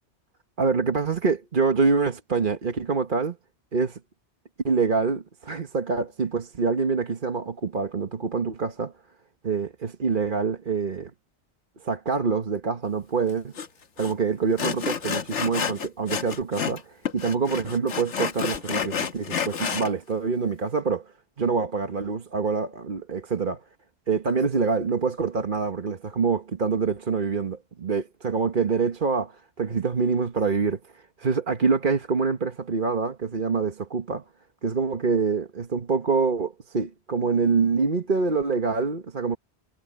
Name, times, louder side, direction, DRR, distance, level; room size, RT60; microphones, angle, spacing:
voice 1, 0.6-3.4 3.7-4.0 4.6-8.9 9.4-11.1 11.8-13.5 14.0-21.1 21.4-23.6 24.1-34.2 34.6-39.4, right 5 dB, 50° right, 1.4 m, -25 dB
Sawing, 13.6-13.7 14.0-14.1 14.6-16.8 17.1-19.9, left 7 dB, 85° left, 1.5 m, -29 dB
omnidirectional pair, 1.2 m